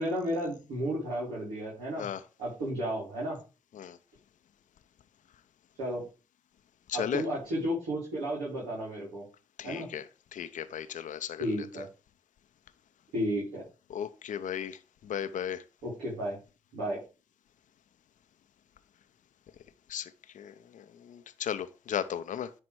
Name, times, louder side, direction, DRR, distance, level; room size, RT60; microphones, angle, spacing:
voice 1, 0.0-2.1 2.4-3.4 5.8-6.0 6.9-9.2 9.6-9.9 11.4-11.9 13.1-13.6 15.8-16.4 16.7-17.0, equal, 85° right, 3.2 m, -33 dB
voice 2, 6.9-7.2 9.6-11.9 13.9-15.6 19.9-22.5, left 9 dB, 70° left, 0.7 m, -36 dB
10.0 x 4.2 x 4.7 m
hypercardioid pair, 40°, 14 cm